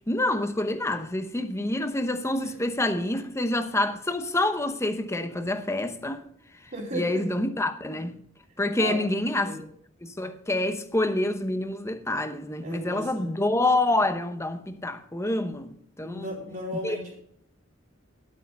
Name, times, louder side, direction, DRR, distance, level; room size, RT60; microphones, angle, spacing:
voice 1, 0.1-6.2 6.9-8.2 8.6-9.6 10.0-16.3 16.8-17.0, left 2 dB, 15° left, 0.9 m, -27 dB
voice 2, 6.7-7.3 8.8-9.0 9.4-9.6 12.6-13.3 16.0-17.1, equal, 45° right, 2.8 m, -35 dB
11.0 x 8.6 x 5.4 m
head